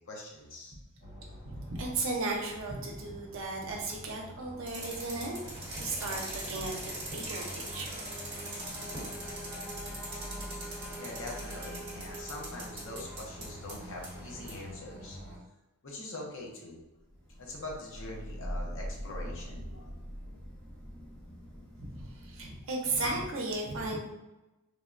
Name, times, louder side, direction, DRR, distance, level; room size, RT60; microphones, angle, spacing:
voice 1, 0.1-0.7 11.0-15.2 15.8-16.8 17.4-19.9, left 2 dB, 60° left, -1 dB, 0.7 m, -43 dB
sound 1, 1.0-15.4, equal, 45° left, 1.0 m, -46 dB
voice 2, 1.4-5.4 5.8-8.1 21.8-24.0, right 2 dB, 65° right, -1 dB, 0.7 m, -35 dB
sound 2, 4.7-14.6, right 1 dB, 25° right, 1.2 m, -42 dB
Thunder / Rain, 17.1-22.8, equal, 20° left, 0.9 m, -42 dB
3.4 x 2.1 x 2.4 m, 1.0 s
head